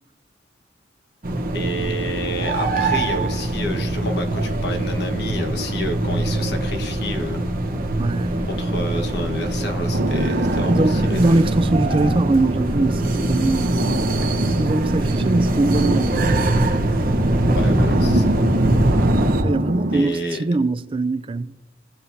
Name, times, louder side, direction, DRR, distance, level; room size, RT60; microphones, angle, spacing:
sound 1, 1.2-19.4, right 1 dB, 55° right, 1.1 m, -22 dB
voice 1, 1.5-7.4 8.5-11.2 17.6-18.2 19.9-20.4, left 1 dB, 65° left, 1.4 m, -29 dB
voice 2, 8.0-8.4 10.7-13.8 14.6-16.3 19.4-21.5, right 2 dB, 30° right, 0.4 m, -22 dB
sound 2, 9.9-20.0, right 1 dB, 80° right, 0.9 m, -26 dB
15.5 x 7.8 x 2.7 m
head